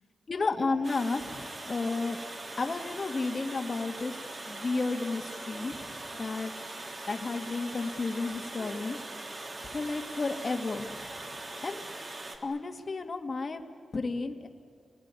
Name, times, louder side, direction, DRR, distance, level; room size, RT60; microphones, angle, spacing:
voice 1, 0.3-2.2 2.6-4.2 4.5-6.5 7.1-9.0 9.7-11.1 11.6-11.9 12.4-13.6 13.9-14.5, left 3 dB, 45° left, 6 dB, 1.9 m, -32 dB
Water, 0.8-12.4, right 2 dB, 45° right, 3.3 m, -41 dB
29.5 x 20.0 x 9.7 m, 2.2 s
cardioid pair, 80°, 0 cm